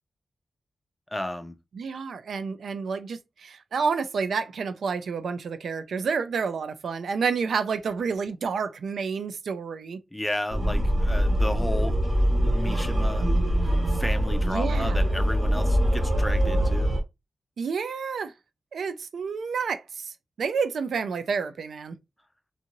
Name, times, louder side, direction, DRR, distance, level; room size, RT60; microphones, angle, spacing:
voice 1, 1.1-1.6 10.1-12.0 12.4-13.3 13.6-16.9, left 1 dB, 10° left, 0.4 m, -33 dB
voice 2, 1.7-10.0 14.4-15.0 17.6-18.3 18.7-22.0, right 5 dB, 90° right, 0.4 m, -29 dB
sound 1, 10.5-17.0, equal, 60° right, 0.9 m, -23 dB
2.6 x 2.5 x 2.9 m
wide cardioid pair, 165°, 0 cm